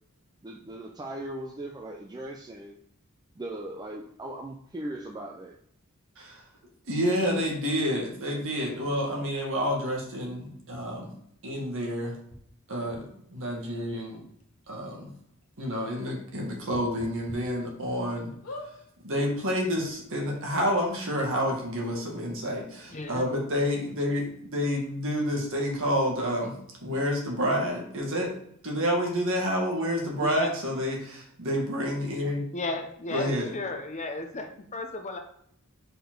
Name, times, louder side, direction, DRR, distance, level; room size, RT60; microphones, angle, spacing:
voice 1, 0.4-2.8 3.4-5.6, right 1 dB, 20° right, 1 dB, 0.4 m, -38 dB
voice 2, 6.9-11.1 11.4-12.1 12.7-13.0 13.3-14.2 14.7-15.1 15.6-18.3 19.0-24.2 24.5-26.5 26.8-28.3 28.6-32.4 33.1-33.5, equal, 65° right, 0 dB, 1.7 m, -29 dB
sound 1, 12.3-12.4 12.9-13.0 14.0-14.1 14.4-14.5 14.9-15.0 16.7-17.4 17.9-18.0 18.4-18.7 19.6-19.7 19.8-19.9, left 1 dB, 80° left, 1.3 m, -41 dB
voice 3, 22.9-23.2 30.2-30.5 32.5-35.2, left 2 dB, 35° left, 5 dB, 0.7 m, -33 dB
5.1 x 4.4 x 4.5 m, 0.69 s
head